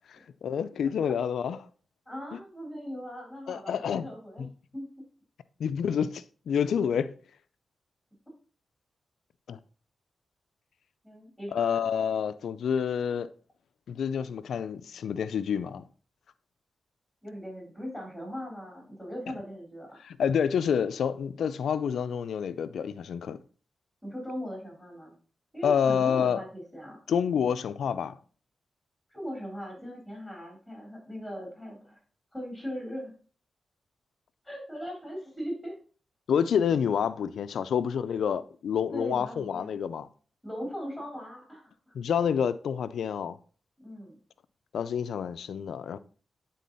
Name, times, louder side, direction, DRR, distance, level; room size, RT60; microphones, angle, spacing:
voice 1, 0.1-1.6 3.5-4.1 4.4-4.5 5.6-7.1 9.5-9.6 11.5-13.3 13.9-15.9 20.0-23.4 25.6-26.4 27.1-28.2 36.3-40.1 41.9-43.4 44.7-46.0, left 7 dB, 85° left, 0.4 m, -28 dB
voice 2, 2.1-4.5 4.7-4.9 11.0-11.9 17.2-20.0 24.0-25.2 25.5-27.0 29.1-32.0 32.3-33.1 34.4-35.8 38.1-38.2 38.9-39.8 40.4-42.0 43.8-44.2, equal, ahead, 3.8 m, -39 dB
9.2 x 3.8 x 4.0 m
cardioid pair, 65°, 0 cm